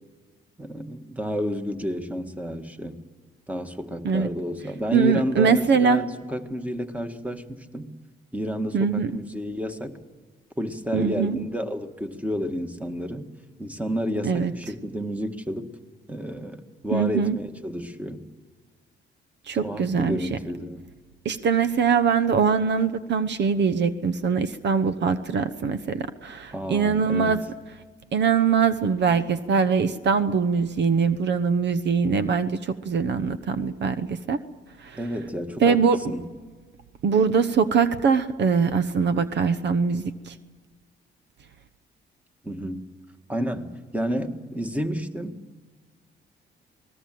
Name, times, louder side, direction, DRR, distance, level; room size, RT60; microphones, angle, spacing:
voice 1, 0.6-3.0 3.5-7.9 8.3-10.0 10.6-13.3 13.6-15.7 16.1-18.3 19.6-20.8 26.5-27.4 35.0-35.8 36.1-36.3 42.4-42.9 43.3-45.4, equal, 5° right, 7 dB, 1.8 m, -30 dB
voice 2, 4.9-6.0 8.7-9.1 10.9-11.4 14.2-14.5 16.9-17.4 19.5-20.2 21.2-27.4 28.1-34.4 34.8-35.0 35.6-36.0 37.0-40.3, right 6 dB, 60° right, 12 dB, 1.1 m, -22 dB
27.5 x 19.5 x 7.8 m, 1.5 s
cardioid pair, 90°, 20 cm